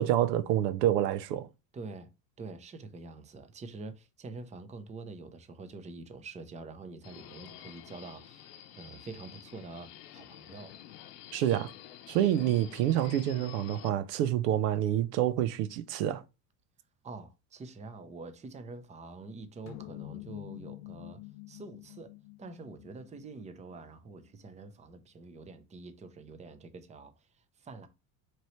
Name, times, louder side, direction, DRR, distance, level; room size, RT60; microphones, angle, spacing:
voice 1, 0.0-1.5 11.3-11.7 12.1-16.2, right 12 dB, 75° right, 0.7 m, -27 dB
voice 2, 1.7-2.1 2.4-10.8 12.5-12.7 17.0-21.2 21.5-22.1 22.4-27.9, right 3 dB, 15° right, 0.6 m, -46 dB
Subway metro underground, 7.0-13.9, left 12 dB, 75° left, 0.8 m, -49 dB
sound 1, 19.7-24.3, left 17 dB, 40° left, 0.4 m, -47 dB
4.5 x 2.9 x 3.1 m
supercardioid pair, 95°, 49 cm